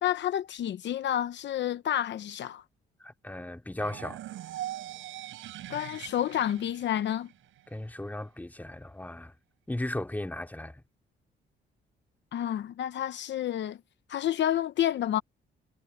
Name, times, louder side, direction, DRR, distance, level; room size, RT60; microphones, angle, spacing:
voice 1, 0.0-2.6 5.7-7.3 12.3-13.8 14.1-15.2, left 11 dB, 65° left, 0.9 m, -29 dB
voice 2, 3.0-4.2 7.7-9.3 9.7-10.8, left 1 dB, 10° left, 2.6 m, -36 dB
sound 1, 3.8-7.8, right 13 dB, 85° right, 6.9 m, -42 dB
cardioid pair, 90°, 20 cm